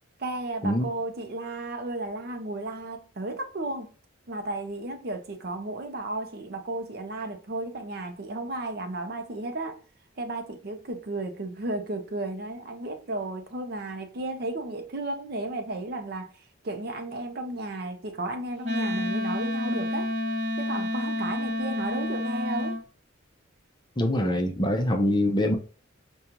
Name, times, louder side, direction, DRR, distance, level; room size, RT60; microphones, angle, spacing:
voice 1, 0.2-3.9 4.3-9.8 10.2-16.3 16.6-20.1 20.6-22.8, right 2 dB, 50° right, 0.6 m, -34 dB
Wind instrument woodwind instrument, 18.6-22.8, left 1 dB, 35° right, 0.9 m, -29 dB
voice 2, 24.0-25.6, left 1 dB, 20° left, 0.5 m, -24 dB
5.0 x 2.3 x 2.9 m
head